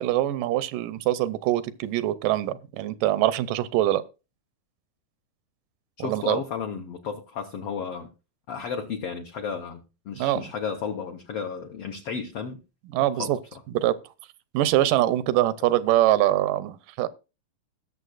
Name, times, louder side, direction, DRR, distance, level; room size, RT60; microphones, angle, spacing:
voice 1, 0.0-4.0 6.0-6.4 10.2-10.4 12.9-13.4 13.7-14.0 14.5-17.1, right 14 dB, 85° right, 2.2 m, -23 dB
voice 2, 6.0-8.1 8.5-12.6 13.1-13.6 15.6-15.7, left 6 dB, 70° left, 1.5 m, -33 dB
19.5 x 6.8 x 2.4 m
omnidirectional pair, 3.8 m